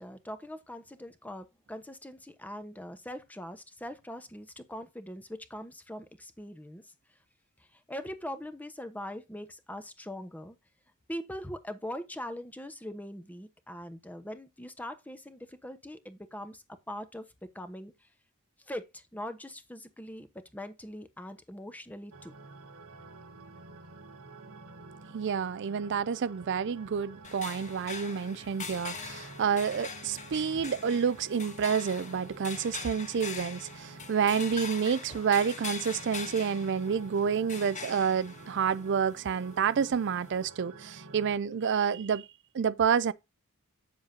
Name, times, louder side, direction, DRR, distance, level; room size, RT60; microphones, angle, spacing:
voice 1, 0.0-6.9 7.7-10.6 11.1-18.1 18.6-22.3, equal, 5° left, 1.1 m, -42 dB
sound 1, 22.1-41.4, right 3 dB, 75° right, 1.4 m, -50 dB
voice 2, 25.1-42.3 42.5-43.1, right 7 dB, 55° right, 0.4 m, -29 dB
sound 2, 27.2-40.5, left 5 dB, 35° left, 1.6 m, -43 dB
8.9 x 7.3 x 2.7 m
head